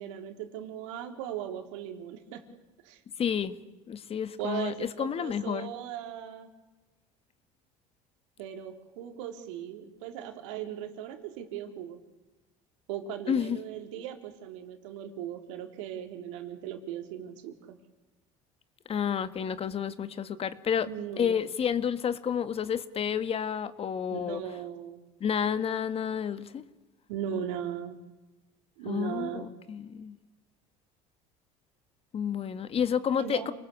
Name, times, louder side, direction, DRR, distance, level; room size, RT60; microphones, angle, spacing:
voice 1, 0.0-2.4 2.8-3.0 4.4-6.5 8.4-12.0 12.9-17.8 20.9-21.4 24.1-25.0 27.1-28.0 28.8-29.4 33.2-33.5, right 9 dB, 85° right, 6 dB, 3.8 m, -38 dB
voice 2, 3.2-3.5 3.9-5.7 13.3-13.6 18.9-20.9 21.2-24.4 25.2-26.6 28.8-30.2 32.1-33.5, left 8 dB, 40° left, 13 dB, 1.8 m, -30 dB
28.5 x 20.5 x 8.6 m, 1.1 s
supercardioid pair, 95°, 15 cm